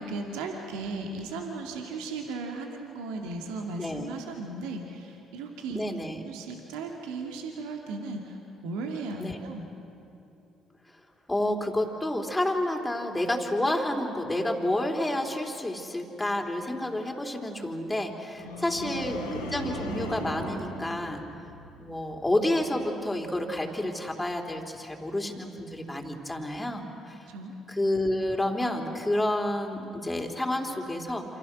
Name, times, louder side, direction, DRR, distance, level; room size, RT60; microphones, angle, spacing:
voice 1, 0.0-5.8 6.2-8.4 8.6-9.7 18.4-19.1 27.3-27.5, right 3 dB, 75° right, 2 dB, 2.3 m, -36 dB
voice 2, 3.8-4.1 5.7-6.2 9.2-9.4 11.3-21.3 21.8-27.2 27.7-31.2, left 1 dB, 15° left, 2 dB, 3.7 m, -29 dB
sound 1, 18.4-21.8 22.2-22.6, equal, 90° left, 4.3 m, -37 dB
28.5 x 26.5 x 6.2 m, 2.8 s
hypercardioid pair, 55°, 0 cm